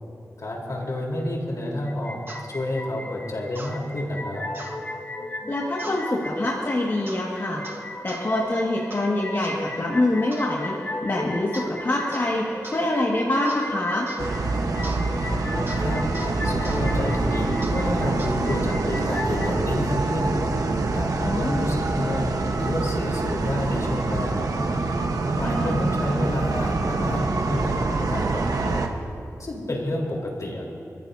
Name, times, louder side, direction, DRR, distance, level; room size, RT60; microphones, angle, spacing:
voice 1, 0.4-2.2 2.5-4.4 15.8-16.0 16.4-20.3 20.9-24.7 25.4-28.9 29.4-30.7, left 1 dB, 65° left, -2 dB, 4.0 m, -29 dB
sound 1, 1.9-19.5, left 1 dB, 25° left, 1.0 m, -36 dB
sound 2, 2.3-2.5 3.6-3.8 4.5-4.8 5.8-6.1 7.1-7.3 7.6-8.3 8.9-9.1 9.4-9.6 10.3-10.6 11.5-11.8 12.1-12.3 12.6-12.9 13.5-13.7 14.1-14.3 14.8-15.0 15.7-15.8 16.1-16.3 16.6-16.8 17.6-17.8 18.2-18.4, right 2 dB, 40° right, 1.7 m, -40 dB
voice 2, 5.5-7.6 8.0-10.7 11.0-14.1 21.2-21.7 25.4-25.8, left 1 dB, 45° left, -4 dB, 2.1 m, -25 dB
sound 3, 14.2-28.9, right 3 dB, 80° right, 1.3 m, -25 dB
28.5 x 14.5 x 2.8 m, 2.4 s
wide cardioid pair, 65°, 6 cm